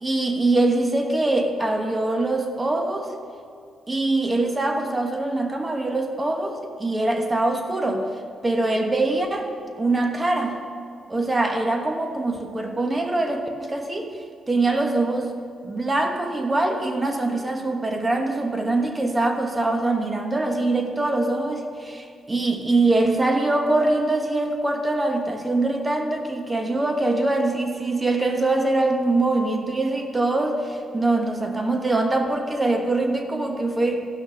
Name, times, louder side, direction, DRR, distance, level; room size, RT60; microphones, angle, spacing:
voice 1, 0.0-3.1 3.9-8.1 8.4-9.5 9.8-10.6 11.1-14.1 14.5-15.3 15.6-34.1, right 2 dB, 20° right, 4 dB, 1.2 m, -23 dB
15.0 x 6.4 x 6.3 m, 2.2 s
cardioid pair, 100°, 0 cm